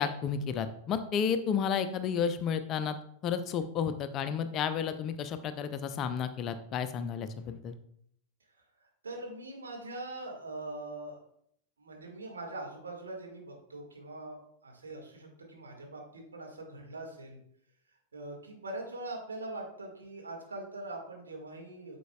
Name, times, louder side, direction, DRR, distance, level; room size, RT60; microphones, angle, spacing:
voice 1, 0.0-3.0 3.2-7.8, left 7 dB, 35° left, 10 dB, 0.6 m, -32 dB
voice 2, 8.6-11.2 11.8-17.4 18.1-22.0, right 2 dB, 75° right, 0 dB, 1.9 m, -42 dB
9.1 x 6.8 x 2.3 m, 0.69 s
figure-of-eight pair, 90°, 0 cm